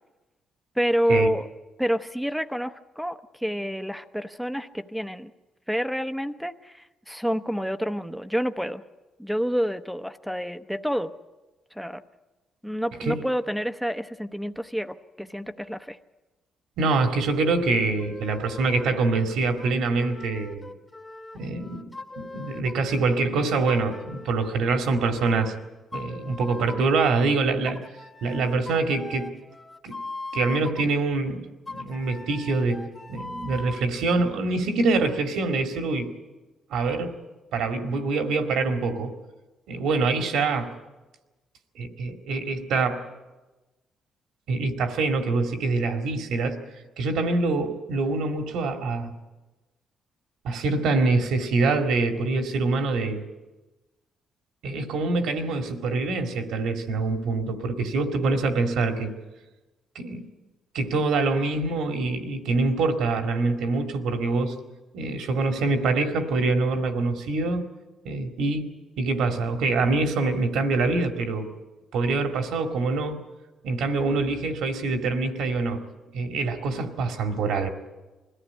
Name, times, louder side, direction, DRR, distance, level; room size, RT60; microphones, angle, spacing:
voice 1, 0.8-1.5 1.8-5.3 5.7-8.8 9.2-11.1 11.7-12.0 12.6-16.0, equal, ahead, 8 dB, 0.8 m, -28 dB
voice 2, 16.8-20.7 21.3-25.5 25.9-27.8 28.2-29.3 29.8-30.0 30.3-36.1 36.7-37.2 37.5-39.1 39.7-40.8 41.8-43.0 44.5-46.6 47.0-49.1 50.4-53.2 54.6-59.1 60.0-60.2 60.7-64.5 64.9-67.6 68.0-68.7 69.0-71.5 71.9-73.2 73.6-75.8 76.1-77.7, right 3 dB, 85° right, 6 dB, 2.1 m, -25 dB
sound 1, 18.0-19.0 19.6-23.0 23.7-25.5 25.9-27.0 27.7-31.0 31.7-33.9, left 2 dB, 25° left, 1.5 m, -41 dB
21.5 x 14.5 x 9.8 m, 1.2 s
cardioid pair, 90°, 0 cm